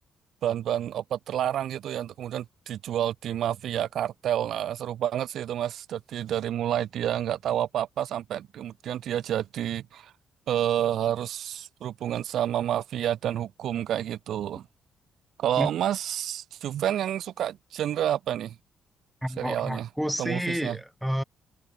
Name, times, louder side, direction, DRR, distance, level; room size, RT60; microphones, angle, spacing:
voice 1, 0.4-10.1 10.5-14.6 15.4-18.5 19.4-19.9 20.2-20.8, right 11 dB, 70° right, 0.6 m, -29 dB
voice 2, 19.2-21.2, equal, ahead, 1.6 m, -30 dB
cardioid pair, 90°, 0 cm